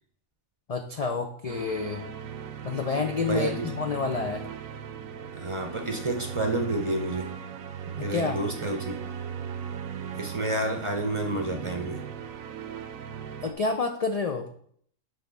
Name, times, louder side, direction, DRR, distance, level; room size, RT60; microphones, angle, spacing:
voice 1, 0.7-2.1 2.6-4.5 8.0-8.4 13.4-14.5, left 4 dB, 75° left, 4 dB, 0.3 m, -29 dB
sound 1, 1.5-13.5, right 8 dB, 80° right, 1.1 m, -38 dB
voice 2, 3.3-3.7 5.4-7.3 8.0-8.9 10.1-12.0, right 2 dB, 30° right, 4 dB, 0.6 m, -29 dB
7.8 x 3.4 x 5.2 m, 0.62 s
omnidirectional pair, 1.4 m